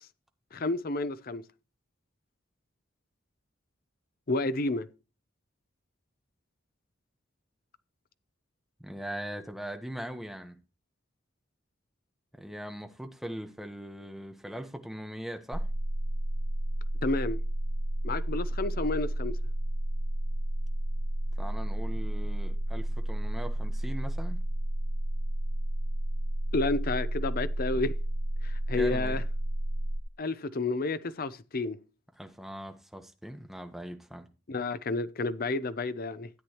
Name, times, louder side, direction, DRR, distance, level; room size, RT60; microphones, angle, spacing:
voice 1, 0.5-1.4 4.3-4.9 17.0-17.4 18.0-19.4 26.5-27.9 28.4-29.2 30.2-31.8 34.5-36.3, left 2 dB, 50° left, 0.7 m, -30 dB
voice 2, 8.8-10.6 12.4-15.6 21.4-24.4 28.7-29.2 32.2-34.3, equal, ahead, 1.1 m, -40 dB
sound 1, 15.5-30.0, right 1 dB, 45° right, 0.8 m, -31 dB
13.0 x 8.8 x 3.0 m
head